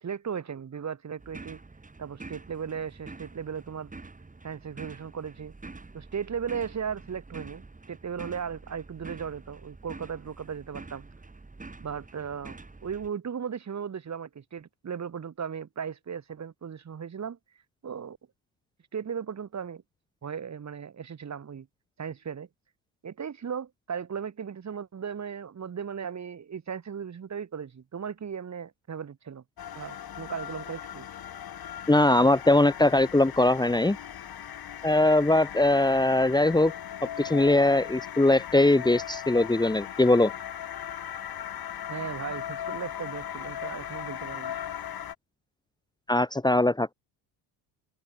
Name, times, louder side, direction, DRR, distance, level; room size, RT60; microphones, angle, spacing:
voice 1, 0.0-1.6 2.0-3.9 4.4-5.5 5.9-11.1 11.8-12.6 12.8-17.4 17.8-18.2 18.9-19.8 20.2-21.7 22.0-22.5 23.0-29.4 29.8-31.1 41.9-44.5, right 7 dB, 35° right, 3.4 m, -36 dB
sound 1, 1.2-13.1, right 3 dB, 15° right, 6.8 m, -47 dB
sound 2, 29.6-45.2, left 10 dB, 50° left, 4.6 m, -38 dB
voice 2, 31.9-34.0 34.8-36.7 37.2-40.3 46.1-46.9, left 2 dB, 10° left, 1.7 m, -21 dB
open air
cardioid pair, 100°, 47 cm